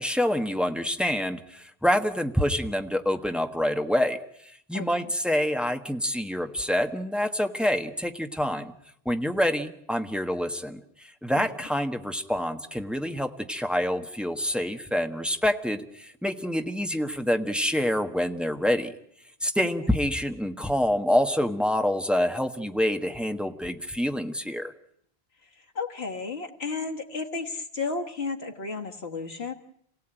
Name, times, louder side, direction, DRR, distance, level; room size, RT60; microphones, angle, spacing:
voice 1, 0.0-4.2 4.7-8.7 9.0-18.9 19.4-24.7, equal, ahead, 6 dB, 1.2 m, -27 dB
voice 2, 4.7-5.1 11.4-11.5 25.4-29.5, left 4 dB, 90° left, 1 dB, 1.9 m, -33 dB
27.5 x 17.0 x 9.0 m, 0.72 s
omnidirectional pair, 1.0 m